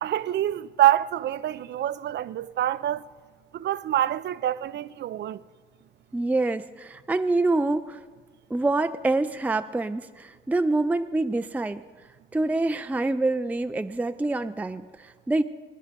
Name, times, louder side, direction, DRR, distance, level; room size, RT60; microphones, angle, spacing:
voice 1, 0.0-3.0 3.5-5.4, right 12 dB, 60° right, 0.5 m, -26 dB
voice 2, 6.1-8.0 8.5-11.8 12.3-15.4, right 2 dB, 10° right, 0.4 m, -26 dB
22.0 x 10.5 x 5.1 m
cardioid pair, 90°, 20 cm